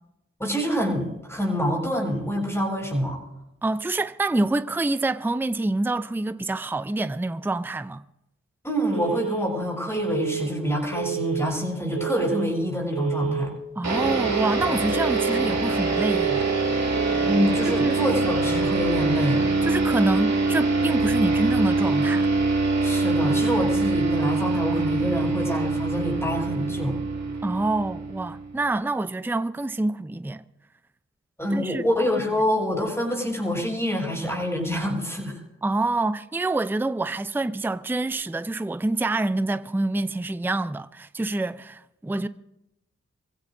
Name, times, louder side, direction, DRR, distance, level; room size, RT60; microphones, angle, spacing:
voice 1, 0.4-3.2 8.6-13.5 17.2-19.4 22.8-27.0 31.4-35.4, equal, 10° left, 7.5 m, -26 dB
voice 2, 3.6-8.0 13.8-16.5 17.7-18.0 19.6-22.3 27.4-30.4 31.5-31.8 35.6-42.3, right 2 dB, 5° right, 0.5 m, -26 dB
Telephone, 8.9-9.5 9.9-10.5 10.9-11.5 11.9-12.5 12.9-13.5 13.9-14.5 14.9-15.5 15.9-16.5 16.9-17.5, right 9 dB, 85° left, 3.7 m, -30 dB
sound 1, 13.8-28.7, right 3 dB, 60° right, 2.3 m, -24 dB
Wind instrument woodwind instrument, 17.3-22.0, right 6 dB, 65° left, 1.9 m, -41 dB
26.5 x 15.5 x 2.7 m
cardioid pair, 45°, 30 cm